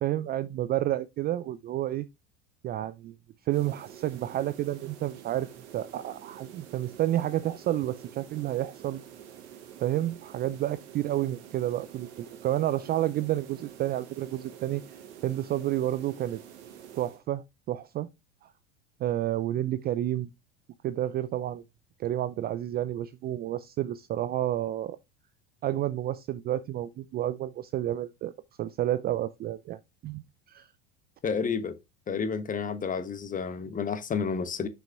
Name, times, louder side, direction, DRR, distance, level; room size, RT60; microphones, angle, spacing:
voice 1, 0.0-2.1 2.6-3.1 3.5-9.0 9.8-14.8 15.2-16.4 17.0-18.1 18.4-18.5 19.0-20.3 20.8-21.6 22.0-25.0 25.6-28.3 28.6-30.2 30.5-30.7, right 13 dB, 30° right, 0.4 m, -30 dB
sound 1, 3.5-17.2, right 10 dB, 70° right, 1.6 m, -48 dB
voice 2, 31.2-31.7 32.1-34.7, left 5 dB, 25° left, 1.0 m, -30 dB
5.9 x 5.3 x 3.4 m
hypercardioid pair, 85°, 35 cm